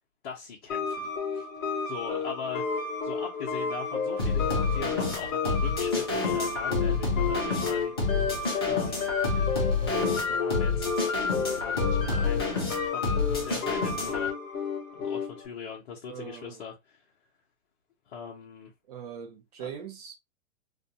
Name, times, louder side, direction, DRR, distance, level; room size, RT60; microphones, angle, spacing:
voice 1, 0.2-1.5 1.8-8.3 8.6-10.9 11.5-12.5 12.8-14.4 14.9-17.0 18.1-18.7 19.6-19.8, left 6 dB, 40° left, 0.7 m, -41 dB
sound 1, 0.7-15.5, left 5 dB, 75° left, 0.9 m, -31 dB
sound 2, 4.2-14.3, left 3 dB, 20° left, 0.3 m, -29 dB
voice 2, 16.1-16.6 18.9-20.1, right 8 dB, 30° right, 0.5 m, -41 dB
2.5 x 2.1 x 2.7 m
hypercardioid pair, 150°, 41 cm